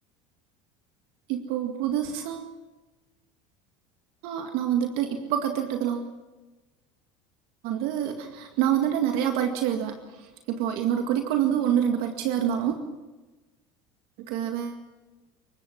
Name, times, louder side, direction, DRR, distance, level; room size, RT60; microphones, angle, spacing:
voice 1, 1.3-2.5 4.2-6.1 7.6-12.7 14.3-14.8, right 9 dB, 65° right, 5 dB, 2.1 m, -27 dB
28.5 x 17.0 x 6.1 m, 1.2 s
hypercardioid pair, 85°, 17 cm